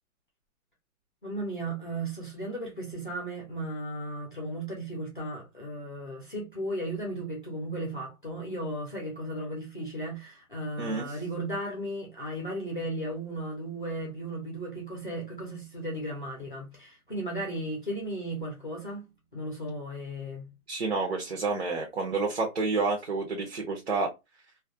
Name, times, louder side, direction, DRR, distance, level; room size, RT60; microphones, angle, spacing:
voice 1, 1.2-20.5, right 1 dB, 35° left, 0.5 m, -35 dB
voice 2, 20.7-24.1, right 3 dB, 45° right, 0.5 m, -29 dB
2.3 x 2.1 x 2.5 m
hypercardioid pair, 180°, 44 cm